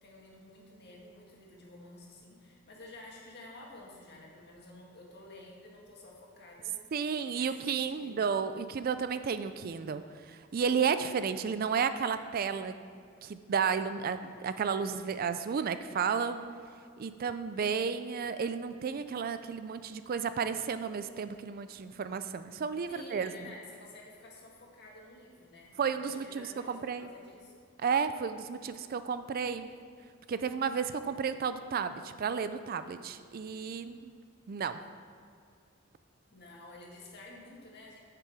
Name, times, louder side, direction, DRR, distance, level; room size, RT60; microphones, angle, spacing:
voice 1, 0.0-8.2 22.9-25.7 26.0-27.5 29.3-29.5 36.3-38.0, left 2 dB, 55° left, -2 dB, 1.9 m, -51 dB
voice 2, 6.9-12.7 13.2-16.4 17.0-23.3 25.8-27.1 27.8-29.7 30.3-34.1 34.5-34.8, right 6 dB, 45° right, 11 dB, 0.4 m, -32 dB
9.4 x 6.7 x 4.8 m, 2.2 s
head